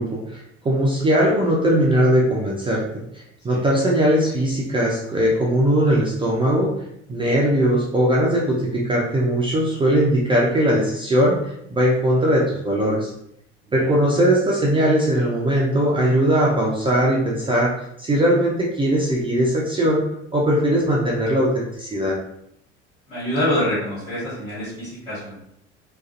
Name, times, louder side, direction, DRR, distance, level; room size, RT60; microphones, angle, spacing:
voice 1, 0.0-2.9 3.1-6.7 7.1-11.4 11.7-13.1 13.7-17.7 18.0-22.2, right 1 dB, 15° right, -4 dB, 0.4 m, -20 dB
voice 2, 23.1-25.3, left 1 dB, 90° left, -12 dB, 1.3 m, -25 dB
2.4 x 2.2 x 2.4 m, 0.75 s
figure-of-eight pair, 70°, 37 cm